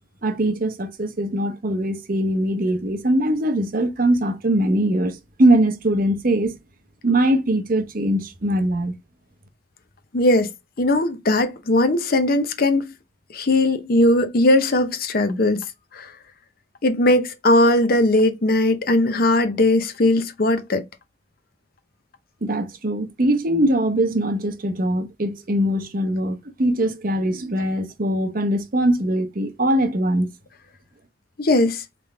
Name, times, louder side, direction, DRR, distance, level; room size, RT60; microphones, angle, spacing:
voice 1, 0.2-6.5 7.0-8.9 22.4-30.3, right 1 dB, 50° right, 0.8 m, -21 dB
voice 2, 10.1-10.5 10.8-12.9 13.3-15.6 15.9-16.1 16.8-20.8 31.4-31.8, left 1 dB, 55° left, 0.7 m, -19 dB
3.7 x 3.4 x 3.3 m
head